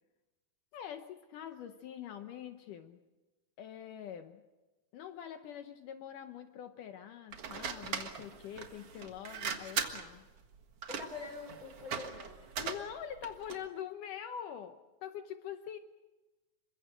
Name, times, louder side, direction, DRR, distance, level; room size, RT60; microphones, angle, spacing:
voice 1, 0.7-3.0 3.6-4.4 4.9-10.2 12.6-15.8, left 9 dB, 70° left, 8 dB, 2.3 m, -44 dB
sound 1, 7.3-13.7, right 6 dB, 50° right, 2.2 m, -40 dB
voice 2, 10.9-12.5, left 3 dB, 25° right, 4 dB, 3.7 m, -45 dB
28.0 x 24.0 x 5.1 m, 1.1 s
omnidirectional pair, 4.2 m